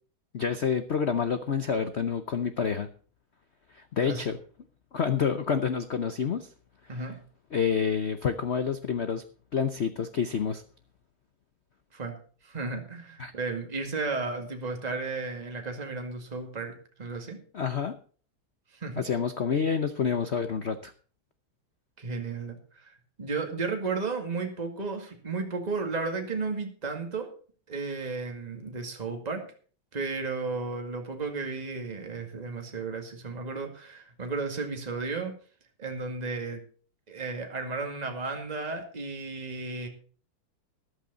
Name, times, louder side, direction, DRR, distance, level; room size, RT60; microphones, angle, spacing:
voice 1, 0.3-2.9 3.7-4.4 4.9-6.5 6.9-7.1 7.5-9.2 9.5-10.6 13.2-13.3 17.5-17.9 19.0-20.9, left 6 dB, 80° left, 10 dB, 0.6 m, -28 dB
voice 2, 12.4-17.4 18.7-19.0 22.0-22.9 23.2-27.3 27.7-29.4 29.9-35.3 35.8-36.6 37.1-39.9, right 4 dB, 20° right, 3 dB, 2.1 m, -34 dB
13.5 x 11.5 x 4.1 m, 0.41 s
omnidirectional pair, 2.3 m